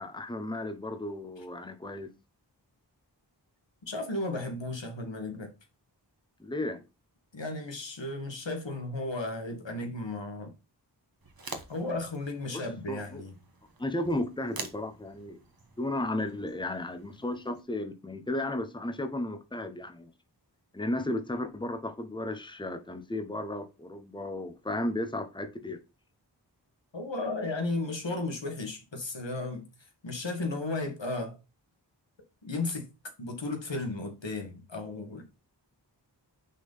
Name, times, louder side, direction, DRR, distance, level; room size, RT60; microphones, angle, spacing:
voice 1, 0.0-2.1 6.4-6.8 12.5-12.6 12.9-13.2 13.8-15.4 15.8-20.1 20.7-25.8, left 1 dB, 10° left, 1.0 m, -34 dB
voice 2, 3.8-5.5 7.3-10.5 11.7-13.4 26.9-29.7 30.0-31.4 32.4-32.9 33.2-35.2, left 2 dB, 85° left, 1.8 m, -34 dB
sound 1, 11.2-17.6, right 3 dB, 55° right, 1.4 m, -47 dB
6.3 x 4.0 x 5.5 m
wide cardioid pair, 45°, 43 cm